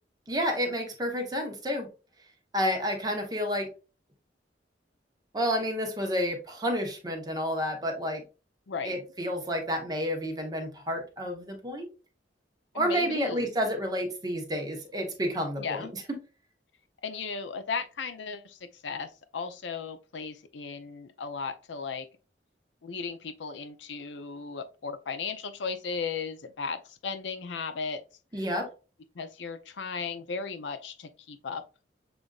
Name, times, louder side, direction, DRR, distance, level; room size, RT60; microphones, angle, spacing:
voice 1, 0.3-1.9 2.5-3.7 5.3-8.2 8.8-11.9 12.7-15.9 28.3-28.7, equal, 20° right, 1.0 m, -30 dB
voice 2, 8.7-9.0 12.7-13.5 15.6-15.9 17.0-22.1 22.8-28.0 29.1-31.6, left 5 dB, 80° left, 0.5 m, -36 dB
6.9 x 2.5 x 2.3 m
head